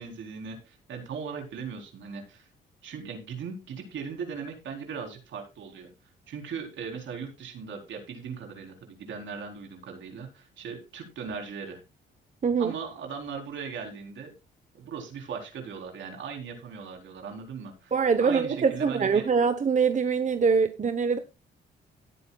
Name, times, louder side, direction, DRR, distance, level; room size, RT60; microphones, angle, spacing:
voice 1, 0.0-2.5 2.8-5.9 6.3-11.8 12.6-14.3 14.7-17.9 18.2-19.3, right 6 dB, 75° right, 4.0 m, -38 dB
voice 2, 12.4-12.7 17.9-21.2, right 5 dB, 40° right, 1.0 m, -24 dB
17.0 x 8.7 x 2.4 m
cardioid pair, 85°, 20 cm